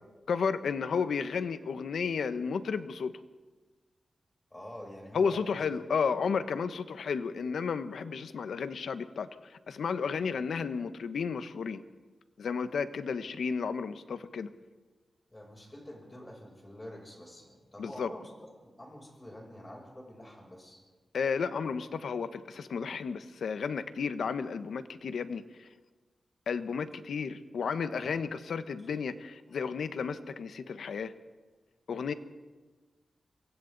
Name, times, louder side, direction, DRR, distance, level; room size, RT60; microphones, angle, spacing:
voice 1, 0.3-3.1 5.1-11.8 12.4-14.5 17.8-18.1 21.1-25.7 26.5-31.1 31.9-32.1, left 5 dB, 90° left, 11 dB, 1.0 m, -33 dB
voice 2, 4.5-5.6 15.3-18.3 18.6-20.8 28.0-28.1 28.8-28.9, left 1 dB, 20° left, -1 dB, 7.3 m, -47 dB
28.5 x 23.5 x 4.0 m, 1.3 s
wide cardioid pair, 80°, 0 cm